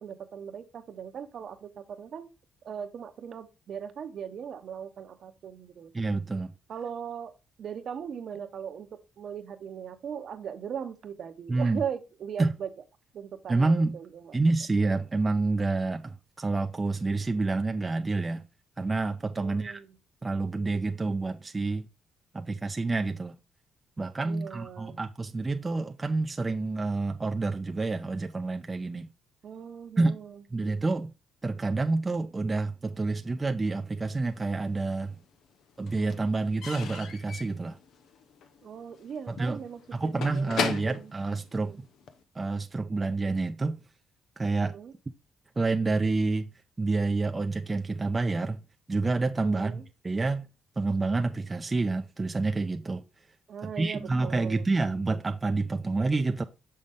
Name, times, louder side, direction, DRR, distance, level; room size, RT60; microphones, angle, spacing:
voice 1, 0.0-2.3 2.6-5.9 6.7-7.3 7.6-12.7 13.1-14.4 19.4-19.9 24.3-25.0 29.4-30.4 38.6-41.1 41.6-41.8 44.6-44.9 49.4-49.8 53.5-55.0, right 8 dB, 60° right, 0.8 m, -39 dB
voice 2, 5.9-6.5 11.5-11.8 12.4-12.5 13.5-14.0 14.3-18.4 18.8-19.8 20.2-21.9 22.3-23.3 24.0-29.1 30.0-30.2 30.5-31.1 31.4-35.2 35.8-37.8 39.3-39.6 39.9-41.9 42.3-43.8 44.4-44.8 45.6-46.5 46.8-48.6 48.9-50.5 50.8-53.0 53.6-56.4, right 3 dB, 25° right, 0.5 m, -28 dB
Slam / Squeak / Wood, 34.4-35.2 35.4-42.2, left 6 dB, 75° left, 0.8 m, -37 dB
6.4 x 5.6 x 3.5 m
cardioid pair, 90°, 0 cm